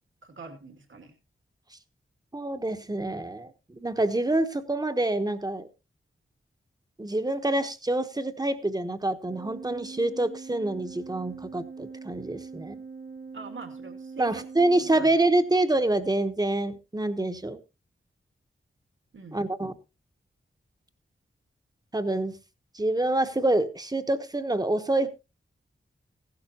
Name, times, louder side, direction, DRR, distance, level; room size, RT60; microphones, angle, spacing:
voice 1, 0.2-1.1 13.3-14.4 14.7-15.1 19.1-19.4, right 4 dB, 70° right, 2.4 m, -42 dB
voice 2, 2.3-5.7 7.0-12.8 14.2-17.6 19.3-19.7 21.9-22.3 22.7-25.1, right 2 dB, 20° right, 1.2 m, -26 dB
Organ, 9.2-15.8, right 4 dB, 45° right, 1.1 m, -43 dB
15.5 x 11.5 x 2.9 m
wide cardioid pair, 95°, 21 cm